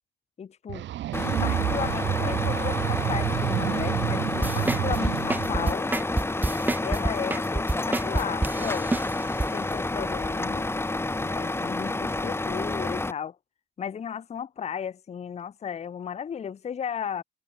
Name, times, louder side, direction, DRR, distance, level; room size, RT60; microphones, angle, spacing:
voice 1, 0.4-0.9 1.4-5.9 6.8-9.0 9.5-10.7 11.2-13.4 13.8-17.2, left 8 dB, 35° left, 0.6 m, -35 dB
sound 1, 0.7-5.7, right 13 dB, 65° right, 0.7 m, -29 dB
Truck, 1.1-13.1, left 2 dB, 10° left, 1.2 m, -29 dB
sound 2, 4.4-9.5 9.9-10.0, right 2 dB, 10° right, 0.6 m, -27 dB
cardioid pair, 90°, 20 cm